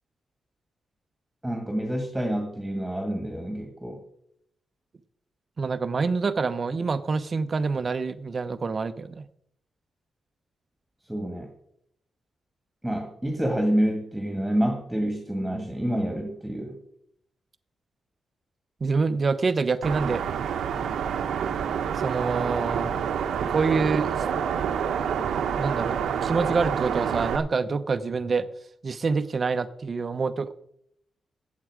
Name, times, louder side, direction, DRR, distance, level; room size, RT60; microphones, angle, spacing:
voice 1, 1.4-4.0 11.1-11.5 12.8-16.8, right 1 dB, 5° right, 4 dB, 1.9 m, -28 dB
voice 2, 5.6-9.2 18.8-20.2 22.0-23.0 23.5-24.2 25.6-28.5 28.8-30.5, right 4 dB, 35° right, 12 dB, 0.8 m, -26 dB
sound 1, 19.8-27.4, right 7 dB, 90° right, 1.1 m, -27 dB
15.5 x 8.5 x 4.9 m, 0.71 s
wide cardioid pair, 150°, 0 cm